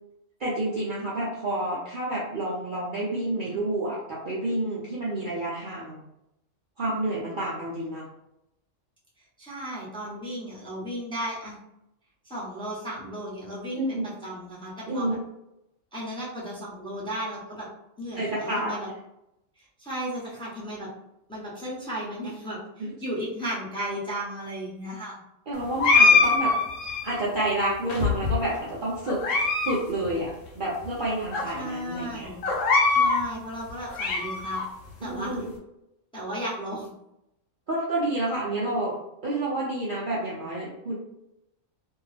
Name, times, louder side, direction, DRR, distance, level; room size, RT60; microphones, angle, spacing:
voice 1, 0.4-6.0 6.8-8.0 13.7-14.1 14.9-15.2 18.2-18.7 22.8-22.9 25.5-26.5 27.0-29.2 29.6-32.3 35.0-35.5 37.7-39.0 39.2-40.9, right 1 dB, 50° right, -6 dB, 0.6 m, -29 dB
voice 2, 9.4-11.6 12.2-15.2 15.9-17.7 18.0-18.9 19.6-20.9 21.3-25.2 31.5-32.4 32.9-34.6 35.0-35.3 36.1-36.9, equal, 5° left, -6 dB, 0.7 m, -35 dB
sound 1, 25.8-27.2 27.9-28.6 29.1-29.8 30.0-30.1 30.8-30.9 31.3-31.4 32.4-33.2 33.7-34.7, left 4 dB, 75° left, 1.1 m, -22 dB
2.6 x 2.3 x 3.2 m, 0.85 s
omnidirectional pair, 1.3 m